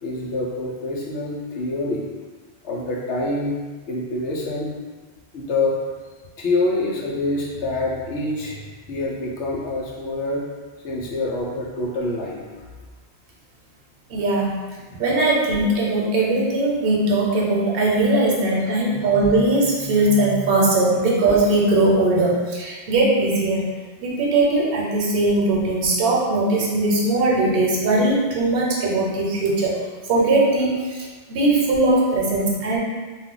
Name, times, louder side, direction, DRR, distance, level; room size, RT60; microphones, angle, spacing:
voice 1, 0.0-2.0 2.6-3.6 3.9-4.7 5.3-5.8 6.4-8.6 8.9-10.4 10.8-12.4, left 2 dB, 85° left, -3 dB, 1.0 m, -26 dB
voice 2, 14.1-14.6 15.0-23.7 24.0-29.8 30.1-32.8, right 2 dB, 60° right, -3 dB, 0.9 m, -20 dB
2.5 x 2.2 x 3.7 m, 1.3 s
omnidirectional pair, 1.1 m